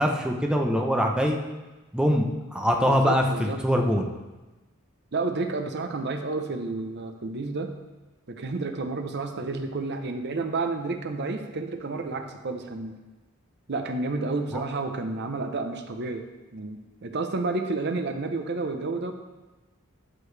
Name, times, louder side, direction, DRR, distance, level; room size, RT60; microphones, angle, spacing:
voice 1, 0.0-1.4 1.9-2.3 2.5-4.1 14.5-14.6, equal, 5° right, 1 dB, 0.7 m, -23 dB
voice 2, 2.8-3.6 5.1-7.7 8.3-13.0 13.7-16.2 16.5-19.1, right 3 dB, 55° right, 6 dB, 0.7 m, -30 dB
13.0 x 6.9 x 3.3 m, 1.2 s
head